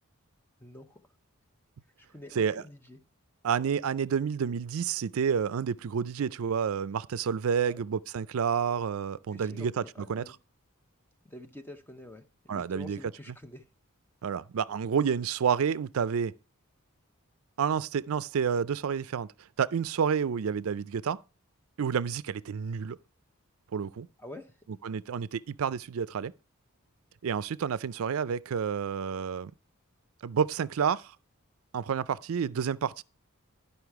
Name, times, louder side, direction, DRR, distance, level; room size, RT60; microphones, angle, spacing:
voice 1, 0.6-1.0 2.0-3.0 7.6-7.8 9.3-10.3 11.2-13.7 24.2-24.5, left 1 dB, 10° left, 0.7 m, -47 dB
voice 2, 3.4-9.8 10.1-10.2 12.5-13.0 14.2-16.3 17.6-19.3 19.6-21.2 21.8-23.0 23.7-24.1 24.8-26.3 27.2-29.5 30.2-31.2 31.7-33.0, right 7 dB, 70° right, 0.4 m, -29 dB
11.5 x 5.5 x 4.6 m
head